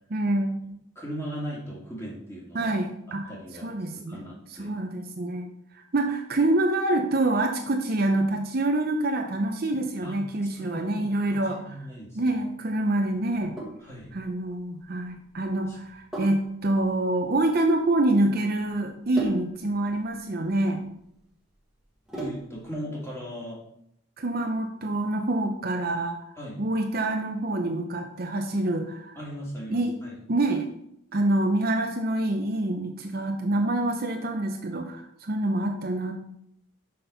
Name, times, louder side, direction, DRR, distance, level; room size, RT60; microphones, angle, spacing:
voice 1, 0.1-0.6 2.5-3.3 3.6-4.2 4.6-5.5 5.9-11.6 12.2-13.5 14.1-20.8 24.2-26.2 26.6-29.2 29.7-29.9 30.3-30.7 31.1-36.1, right 2 dB, 45° right, 4 dB, 0.7 m, -26 dB
voice 2, 0.9-2.7 3.1-3.7 4.1-4.7 10.0-11.0 11.3-12.4 13.8-14.1 15.7-15.8 22.1-23.6 26.4-26.6 29.2-30.2, equal, 15° left, -5 dB, 2.3 m, -38 dB
Sink (filling or washing), 13.3-22.7, right 2 dB, 5° right, 1.5 m, -40 dB
6.0 x 5.3 x 5.5 m, 0.74 s
head